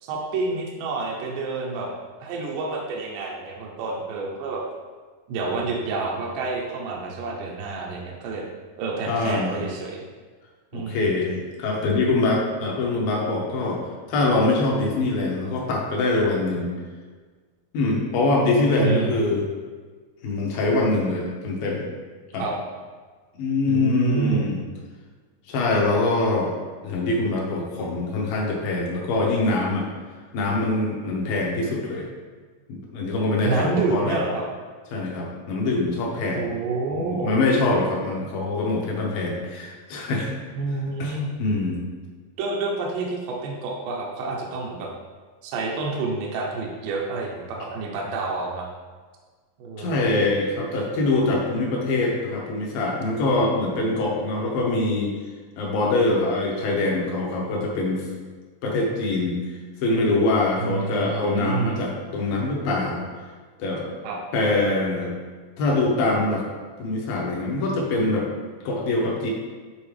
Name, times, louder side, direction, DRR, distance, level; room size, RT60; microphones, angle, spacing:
voice 1, 0.0-1.9 2.2-4.6 5.3-8.5 8.8-10.1 10.7-11.2 18.8-19.3 22.4-22.6 23.7-24.5 33.4-34.4 36.4-37.3 40.6-41.3 42.4-44.9 45.4-48.7 49.6-50.1 60.6-61.8 64.0-64.2, right 3 dB, 70° right, -2 dB, 2.1 m, -28 dB
voice 2, 9.1-9.6 10.7-13.8 14.1-16.7 17.7-19.5 20.2-21.9 22.3-22.5 23.4-24.6 25.5-26.5 26.8-29.9 30.3-32.1 32.7-34.2 34.9-36.5 36.9-40.4 41.0-41.8 49.8-55.1 55.6-58.1 58.6-59.4 59.8-63.0 63.6-63.9 64.3-65.1 65.6-66.4 66.8-68.3 68.6-69.3, left 2 dB, 70° left, -1 dB, 2.8 m, -24 dB
8.7 x 4.5 x 3.3 m, 1.5 s
omnidirectional pair, 4.5 m